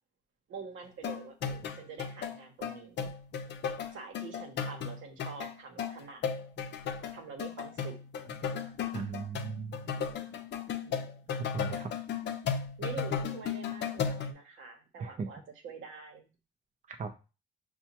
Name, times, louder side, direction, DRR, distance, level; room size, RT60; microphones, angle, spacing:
voice 1, 0.5-3.1 3.9-6.2 7.1-8.5 10.8-11.0 12.8-16.3, right 5 dB, 80° right, 4 dB, 1.0 m, -46 dB
sound 1, 1.0-14.3, left 6 dB, 60° left, 0.5 m, -35 dB
voice 2, 8.9-9.8 11.5-11.9 15.0-15.3 16.9-17.1, right 5 dB, 40° right, 5 dB, 0.6 m, -37 dB
5.6 x 2.3 x 2.9 m, 0.30 s
cardioid pair, 90°, 20 cm